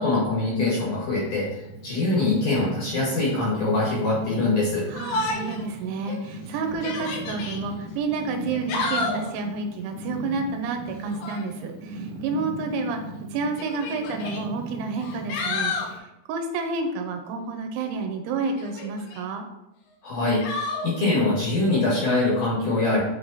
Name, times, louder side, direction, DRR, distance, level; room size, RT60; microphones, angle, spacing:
voice 1, 0.0-4.8 20.0-23.0, left 2 dB, 55° left, -6 dB, 2.8 m, -23 dB
Purr, 1.2-16.0, right 2 dB, 50° right, 2.3 m, -39 dB
Yell, 4.9-5.6 6.1-6.2 6.7-7.6 8.4-9.3 11.0-11.5 12.6-12.7 13.6-14.4 15.0-15.9 18.6-19.2 20.4-20.9, left 3 dB, 85° left, 3.9 m, -30 dB
voice 2, 4.9-13.0 13.3-19.5, right 4 dB, 80° right, 4 dB, 3.2 m, -30 dB
8.5 x 4.8 x 4.1 m, 0.88 s
omnidirectional pair, 5.4 m